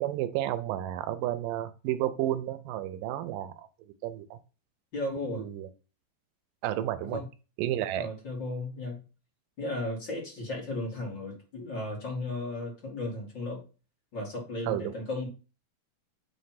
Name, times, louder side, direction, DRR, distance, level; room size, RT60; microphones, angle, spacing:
voice 1, 0.0-4.4 5.3-5.7 6.6-7.2 7.6-8.1 14.7-14.9, right 13 dB, 85° right, 12 dB, 2.3 m, -32 dB
voice 2, 4.9-5.4 7.1-7.3 7.9-9.0 9.6-13.6 14.1-15.3, left 2 dB, 40° left, -2 dB, 2.6 m, -35 dB
7.5 x 3.3 x 5.8 m, 0.34 s
omnidirectional pair, 3.7 m